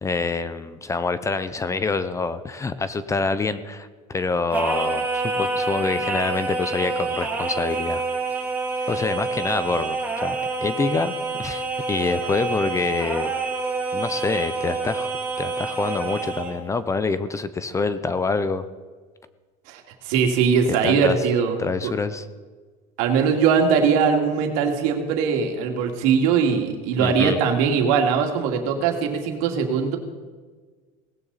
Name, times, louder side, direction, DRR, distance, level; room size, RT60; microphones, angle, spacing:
voice 1, 0.0-8.0 8.9-11.1 11.4-13.3 13.9-15.1 15.4-18.7 20.7-21.2 21.6-22.3 27.0-27.4, left 4 dB, 15° left, 13 dB, 0.6 m, -26 dB
Singing, 4.5-16.6, right 3 dB, 10° right, 3.0 m, -27 dB
voice 2, 19.7-21.6 21.8-21.9 23.0-30.0, right 6 dB, 80° right, 3 dB, 2.5 m, -21 dB
18.0 x 16.5 x 4.1 m, 1.4 s
cardioid pair, 135°, 18 cm